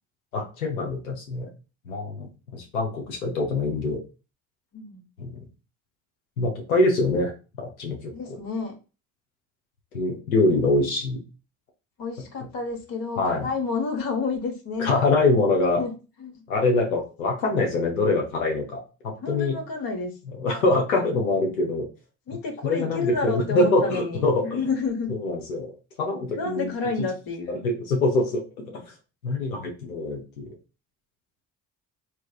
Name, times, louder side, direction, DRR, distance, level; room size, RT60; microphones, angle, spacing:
voice 1, 0.3-1.5 1.9-4.0 5.2-5.4 6.4-7.3 7.6-8.1 9.9-11.2 13.2-13.5 14.8-15.8 16.5-19.6 20.3-21.9 22.3-24.6 25.1-25.7 26.0-26.7 27.0-27.1 27.5-28.9 29.2-30.5, left 2 dB, 90° left, 1 dB, 0.6 m, -24 dB
voice 2, 4.7-5.0 8.1-8.8 12.0-14.9 15.8-15.9 16.2-16.4 19.2-20.1 22.3-25.2 26.4-27.6, left 4 dB, 55° left, 3 dB, 1.2 m, -30 dB
3.2 x 2.9 x 2.4 m, 0.32 s
figure-of-eight pair, 45°, 41 cm